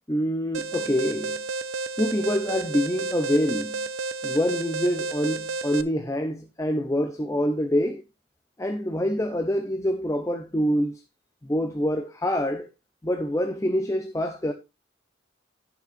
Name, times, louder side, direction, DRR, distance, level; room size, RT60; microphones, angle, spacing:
voice 1, 0.1-1.4 2.0-3.8 4.2-8.0 8.6-11.0 11.4-12.7 13.0-14.5, equal, 15° left, 0.7 m, -26 dB
Alarm, 0.5-5.8, right 3 dB, 85° right, 0.7 m, -31 dB
16.5 x 5.9 x 2.5 m
head